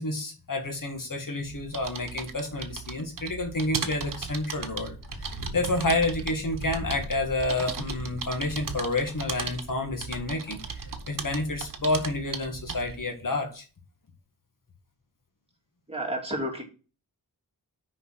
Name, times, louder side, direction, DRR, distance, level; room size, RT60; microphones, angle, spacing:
voice 1, 0.0-13.6, left 2 dB, 55° left, 4 dB, 1.8 m, -29 dB
sound 1, 1.4-13.0, right 5 dB, 55° right, 1.2 m, -37 dB
Wind, 4.9-13.1, left 1 dB, 75° left, 2.1 m, -42 dB
voice 2, 15.9-16.6, right 1 dB, 15° right, -1 dB, 2.9 m, -31 dB
6.2 x 5.4 x 6.2 m, 0.34 s
wide cardioid pair, 95°, 39 cm